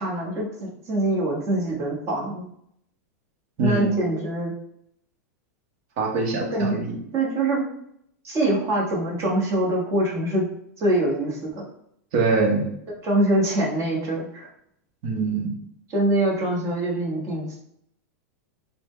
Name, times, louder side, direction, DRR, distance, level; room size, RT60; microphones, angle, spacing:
voice 1, 0.0-2.5 3.6-4.5 6.5-6.8 7.1-7.6 8.2-10.4 10.8-11.6 13.0-14.5 15.9-17.6, right 1 dB, 30° right, -3 dB, 1.2 m, -24 dB
voice 2, 3.6-4.0 6.0-7.0 12.1-12.6 15.0-15.5, right 4 dB, 50° right, 0 dB, 1.0 m, -23 dB
3.8 x 2.2 x 3.2 m, 0.72 s
supercardioid pair, 135°, 9 cm